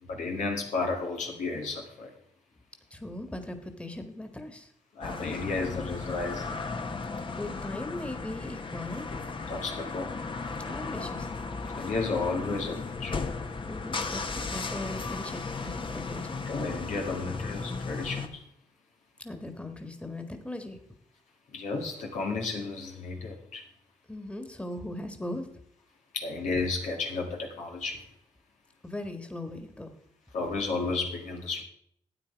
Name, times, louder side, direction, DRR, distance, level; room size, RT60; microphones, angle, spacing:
voice 1, 0.0-2.1 5.0-6.6 9.5-10.2 11.7-13.2 16.5-18.4 21.5-23.6 26.1-28.1 30.3-31.6, left 3 dB, 85° left, 1 dB, 2.2 m, -33 dB
voice 2, 2.9-4.7 7.3-9.0 10.6-11.3 13.6-16.4 19.2-20.8 24.1-25.5 28.8-29.9, left 1 dB, 10° left, 6 dB, 1.7 m, -39 dB
sound 1, 5.0-18.3, left 4 dB, 45° left, 1.2 m, -35 dB
12.5 x 8.8 x 4.6 m, 0.68 s
cardioid pair, 60°, 12 cm